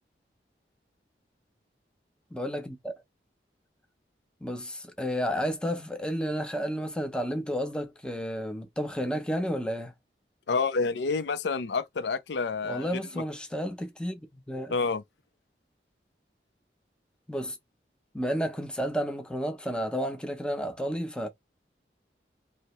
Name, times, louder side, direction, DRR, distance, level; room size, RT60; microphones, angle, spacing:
voice 1, 2.3-2.9 4.4-9.9 12.6-14.8 17.3-17.6 18.1-21.3, equal, 5° left, 0.6 m, -31 dB
voice 2, 10.5-13.0 14.7-15.0, left 4 dB, 90° left, 0.5 m, -28 dB
2.8 x 2.7 x 3.0 m
head